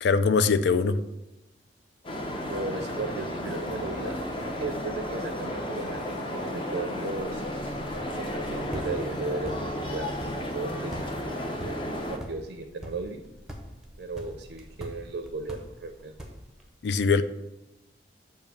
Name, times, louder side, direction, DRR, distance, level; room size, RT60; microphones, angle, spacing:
voice 1, 0.0-1.0 16.8-17.2, left 4 dB, 70° left, 0.4 m, -22 dB
sound 1, 2.0-12.2, left 1 dB, 30° left, 0.6 m, -33 dB
voice 2, 2.4-7.5 8.0-10.9 11.2-13.2 14.0-16.1, right 3 dB, 75° right, 0.5 m, -36 dB
sound 2, 7.1-16.7, equal, 5° right, 0.7 m, -44 dB
6.8 x 2.7 x 5.1 m
head